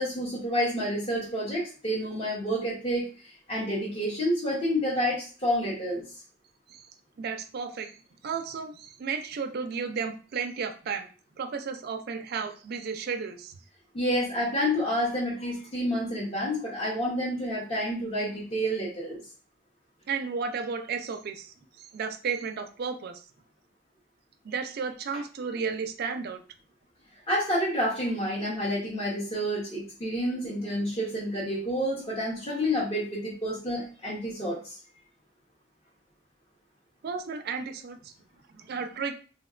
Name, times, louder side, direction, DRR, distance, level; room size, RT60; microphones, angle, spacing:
voice 1, 0.0-6.0 13.9-19.2 27.3-34.8, equal, 30° left, -6 dB, 0.7 m, -29 dB
voice 2, 7.2-7.9 8.2-11.1 11.4-13.5 20.1-23.2 24.4-26.4 37.0-38.1 38.5-39.1, right 5 dB, 50° right, 7 dB, 0.3 m, -33 dB
3.5 x 2.2 x 2.3 m, 0.38 s
head